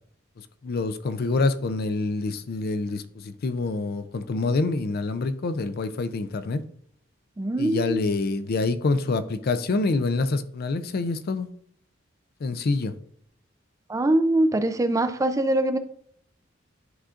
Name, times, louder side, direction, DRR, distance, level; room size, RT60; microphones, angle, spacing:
voice 1, 0.6-6.6 7.6-11.5 12.4-12.9, left 3 dB, 50° left, 0.4 m, -26 dB
voice 2, 7.4-8.0 13.9-15.8, right 1 dB, 15° right, 0.4 m, -23 dB
11.0 x 3.7 x 2.5 m
head